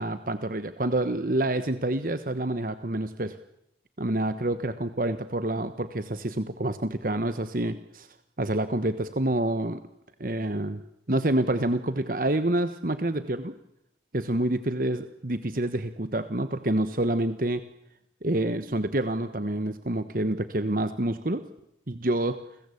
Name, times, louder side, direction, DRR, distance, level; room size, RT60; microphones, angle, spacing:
voice 1, 0.0-3.4 4.0-8.1 8.4-9.8 10.2-10.8 11.1-13.5 14.1-17.6 18.2-21.4 21.9-22.4, right 1 dB, 50° right, 11 dB, 1.2 m, -27 dB
30.0 x 21.5 x 8.5 m, 0.83 s
head